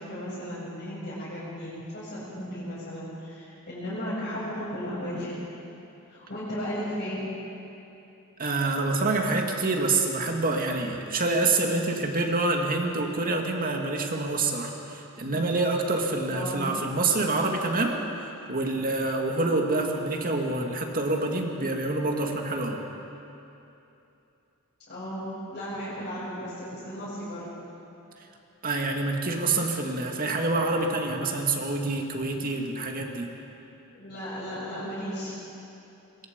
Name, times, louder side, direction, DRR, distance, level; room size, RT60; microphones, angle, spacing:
voice 1, 0.0-5.5 6.1-7.2 16.3-16.6 24.9-27.5 33.9-35.3, equal, 45° left, -12 dB, 7.1 m, -35 dB
voice 2, 8.4-22.8 28.6-33.3, right 2 dB, 40° right, 2 dB, 2.2 m, -27 dB
26.0 x 22.5 x 5.3 m, 2.9 s
head